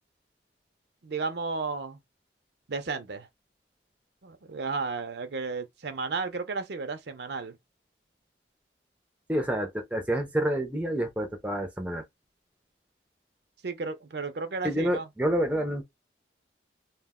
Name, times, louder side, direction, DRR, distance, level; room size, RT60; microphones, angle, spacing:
voice 1, 1.0-2.0 2.7-3.3 4.2-7.6 13.6-15.1, right 4 dB, 60° right, 0.5 m, -33 dB
voice 2, 9.3-12.0 14.6-15.8, right 1 dB, 10° right, 0.5 m, -28 dB
2.3 x 2.1 x 3.6 m
head